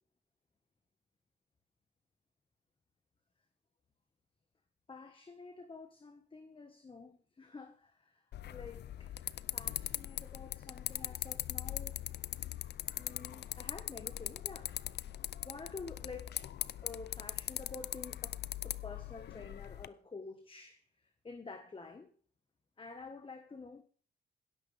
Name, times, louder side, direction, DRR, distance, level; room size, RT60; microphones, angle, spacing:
voice 1, 4.9-8.2 8.5-9.1 9.5-12.0 12.9-14.7 15.4-16.4 16.8-22.1 22.8-23.8, left 4 dB, 25° left, 1.5 m, -49 dB
sound 1, 8.3-19.9, left 12 dB, 60° left, 0.5 m, -41 dB
16.5 x 13.0 x 3.5 m
cardioid pair, 90°, 20 cm